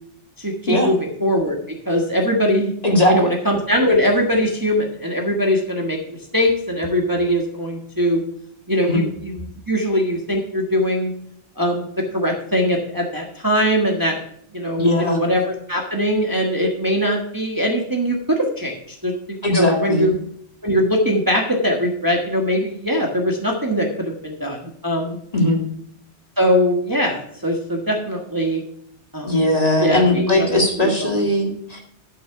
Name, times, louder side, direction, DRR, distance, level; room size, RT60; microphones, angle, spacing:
voice 1, 0.4-1.6 1.8-2.7 3.1-8.2 8.7-11.1 11.6-11.9 12.1-14.2 14.5-18.8 19.0-20.2 20.6-25.2 26.4-28.6 29.1-29.3 29.8-30.5 30.8-31.1, equal, 20° right, 0 dB, 1.4 m, -21 dB
voice 2, 2.8-3.3 8.8-9.0 14.8-15.2 19.4-20.1 25.3-25.6 29.2-31.8, left 1 dB, 35° left, 0 dB, 2.3 m, -18 dB
12.5 x 6.0 x 4.7 m, 0.69 s
omnidirectional pair, 1.1 m